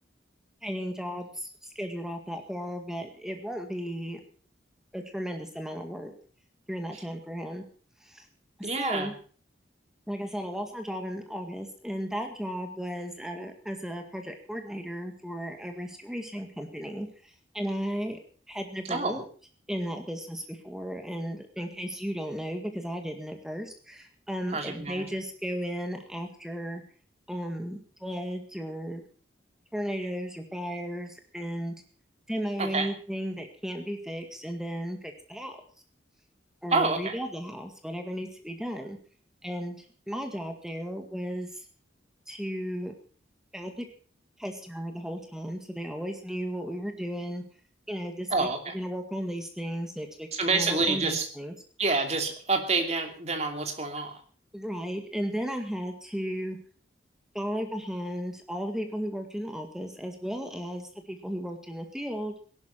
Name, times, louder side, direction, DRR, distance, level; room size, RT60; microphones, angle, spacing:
voice 1, 0.6-4.2 4.9-6.1 6.7-7.6 8.0-8.3 8.6-9.1 10.1-18.2 18.5-19.3 19.7-26.8 27.3-29.0 29.7-31.7 32.3-35.6 36.6-39.0 39.4-41.7 42.3-42.9 43.5-43.9 44.4-47.4 47.9-48.5 48.7-51.5 54.5-56.6 57.3-62.3, equal, 5° right, 4 dB, 1.9 m, -35 dB
voice 2, 8.6-9.1 18.9-19.2 24.5-25.0 32.6-32.9 36.7-37.2 48.3-48.7 50.3-51.3 51.8-54.2, right 3 dB, 35° right, 5 dB, 2.8 m, -27 dB
17.0 x 12.0 x 5.7 m, 0.43 s
head